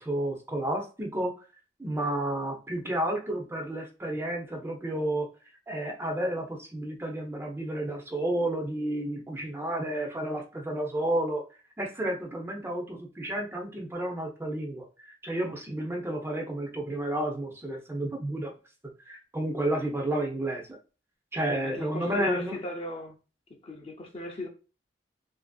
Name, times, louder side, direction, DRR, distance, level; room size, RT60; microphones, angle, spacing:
voice 1, 0.0-1.3 1.8-5.3 5.7-11.4 11.8-18.5 19.1-20.6 21.3-22.6, right 1 dB, 15° right, 0.5 m, -31 dB
voice 2, 21.6-23.2 23.6-24.5, left 2 dB, 35° left, 0.5 m, -36 dB
2.8 x 2.5 x 2.3 m
head